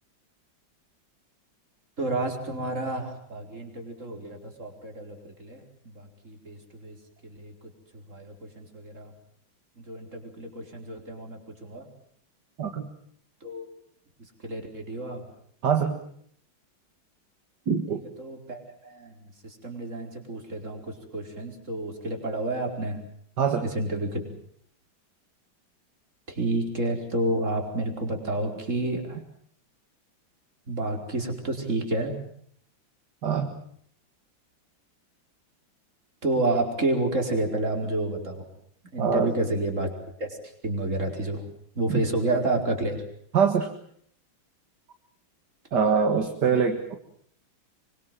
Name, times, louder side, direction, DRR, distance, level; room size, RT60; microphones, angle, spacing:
voice 1, 2.0-7.0 7.3-7.5 8.1-9.1 9.8-11.9 13.4-13.7 14.4-15.2 17.9-19.3 19.6-23.0 23.6-24.2 26.3-29.2 30.7-32.1 36.2-38.4 38.9-39.9 40.2-40.4 40.6-41.4 41.7-43.0 46.4-46.6, right 2 dB, 35° right, 3 dB, 5.1 m, -30 dB
voice 2, 12.6-12.9 15.6-16.0 17.7-18.0 23.4-23.6 33.2-33.6 39.0-39.3 41.9-42.0 43.3-43.7 45.7-46.9, right 6 dB, 60° right, 5 dB, 2.4 m, -24 dB
25.5 x 24.5 x 7.5 m, 0.63 s
omnidirectional pair, 2.1 m